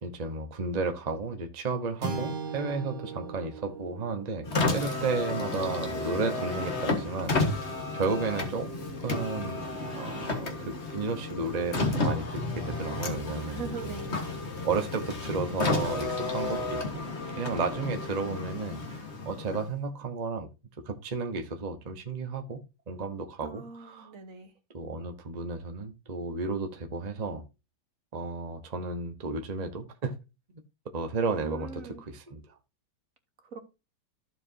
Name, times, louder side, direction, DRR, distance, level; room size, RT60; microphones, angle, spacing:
voice 1, 0.0-8.7 9.0-9.6 9.9-14.0 14.6-17.1 17.4-20.5 20.8-24.1 24.7-27.4 28.1-30.1 30.9-32.5, right 4 dB, 30° right, 1.0 m, -33 dB
sound 1, 2.0-6.5, right 4 dB, 85° right, 2.5 m, -39 dB
Car, 4.4-19.8, left 3 dB, 40° left, 1.6 m, -32 dB
voice 2, 13.5-14.3 17.4-18.0 23.4-24.5 31.4-32.0 33.4-33.6, right 5 dB, 55° right, 1.4 m, -42 dB
14.5 x 4.9 x 2.7 m
omnidirectional pair, 1.8 m